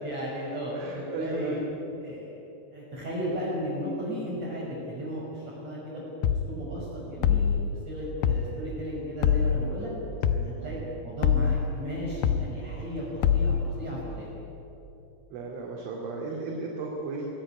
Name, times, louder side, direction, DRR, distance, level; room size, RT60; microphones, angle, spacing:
voice 1, 0.0-1.6 2.0-2.3 2.7-6.0 6.5-7.6 7.8-9.9 10.6-10.8 11.0-14.3, equal, 30° right, -6 dB, 6.5 m, -35 dB
voice 2, 0.8-1.7 8.9-9.2 10.3-10.8 15.3-17.3, right 3 dB, 70° right, -2 dB, 4.7 m, -36 dB
sound 1, 6.2-6.5 7.2-7.6 8.2-8.5 9.2-9.6 10.2-10.5 11.2-11.6 12.2-12.5 13.2-13.6, left 8 dB, 75° left, 2.4 m, -23 dB
25.0 x 19.0 x 10.0 m, 3.0 s
omnidirectional pair, 5.9 m